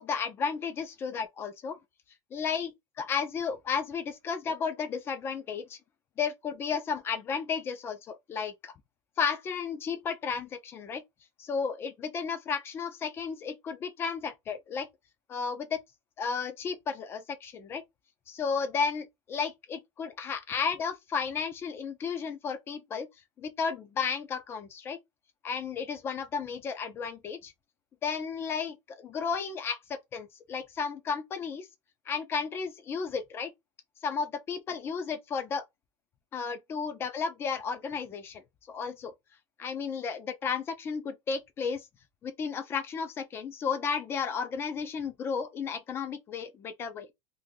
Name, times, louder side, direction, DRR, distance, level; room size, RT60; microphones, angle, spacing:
voice 1, 0.0-1.8 2.3-5.8 6.2-8.7 9.2-11.0 11.4-14.9 15.3-15.8 16.2-17.8 18.3-23.1 23.4-25.0 25.4-27.5 28.0-31.7 32.1-33.5 34.0-35.6 36.3-38.4 38.7-39.1 39.6-41.8 42.2-47.1, left 6 dB, 15° left, 0.4 m, -33 dB
2.6 x 2.6 x 3.6 m
supercardioid pair, 180°, 14 cm